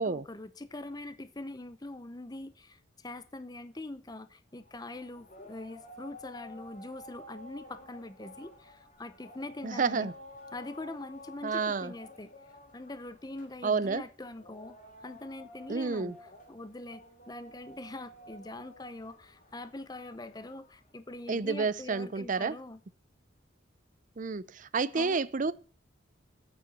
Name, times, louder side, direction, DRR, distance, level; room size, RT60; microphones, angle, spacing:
voice 1, 0.0-10.1 10.5-12.3 12.7-14.8 15.0-16.1 16.5-22.8 24.9-25.2, left 2 dB, 20° left, 0.7 m, -43 dB
sound 1, 4.6-20.9, left 1 dB, 45° left, 2.5 m, -52 dB
voice 2, 9.6-10.1 11.4-11.9 13.6-14.0 15.7-16.1 21.3-22.6 24.2-25.5, right 4 dB, 45° right, 0.6 m, -30 dB
8.8 x 6.7 x 8.7 m
head